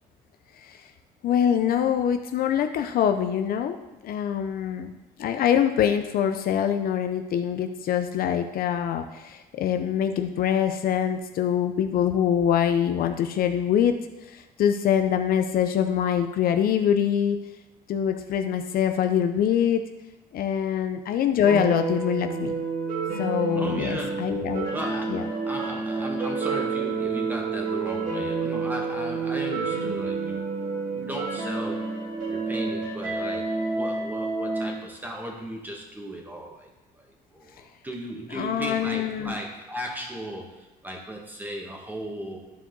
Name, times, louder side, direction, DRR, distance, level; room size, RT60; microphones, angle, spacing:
voice 1, 1.2-3.8 4.0-4.9 5.2-14.0 14.3-17.4 17.9-19.9 20.3-22.6 23.2-24.7 25.1-25.2 38.3-39.4, left 9 dB, 60° left, 7 dB, 0.6 m, -24 dB
sound 1, 21.4-34.7, right 4 dB, 55° right, 2.9 m, -29 dB
voice 2, 23.5-24.3 24.7-31.9 32.3-42.4, right 1 dB, 10° right, 0 dB, 1.7 m, -36 dB
11.5 x 4.7 x 3.9 m, 1.1 s
cardioid pair, 110°, 17 cm